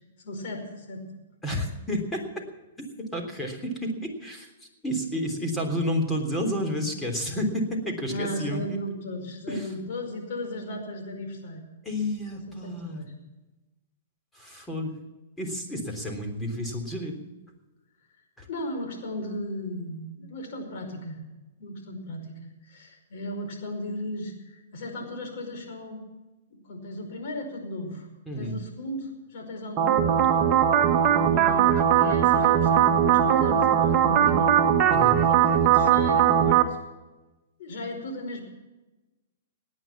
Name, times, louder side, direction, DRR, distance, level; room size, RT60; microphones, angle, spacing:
voice 1, 0.2-1.1 8.1-11.6 12.3-13.1 18.5-21.2 21.6-26.0 26.5-28.1 28.3-30.2 31.0-34.5 35.2-36.8 37.6-38.4, left 1 dB, 60° left, 3 dB, 5.2 m, -36 dB
voice 2, 1.4-2.4 2.8-8.8 9.5-9.8 11.8-13.0 14.3-14.9 15.4-17.2 18.4-18.5 28.3-28.6 34.9-35.2, equal, 10° left, 2 dB, 3.4 m, -31 dB
sound 1, 29.8-36.6, right 9 dB, 30° right, 1.6 m, -20 dB
18.0 x 9.7 x 7.3 m, 1.1 s
hypercardioid pair, 135°, 0 cm